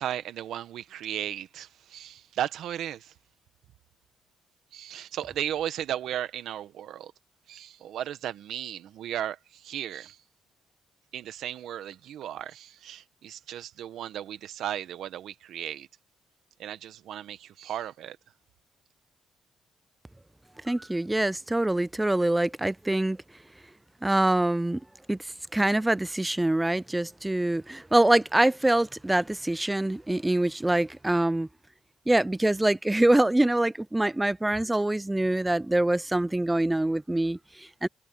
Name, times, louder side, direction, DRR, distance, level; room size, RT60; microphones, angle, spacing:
voice 1, 0.0-3.1 4.7-7.1 7.5-10.2 11.1-15.9 16.6-18.2, right 11 dB, 75° right, 1.5 m, -35 dB
voice 2, 20.6-23.2 24.0-24.8 25.1-25.2 25.5-31.5 32.1-37.9, right 1 dB, 10° right, 0.5 m, -24 dB
cardioid pair, 90°, 0 cm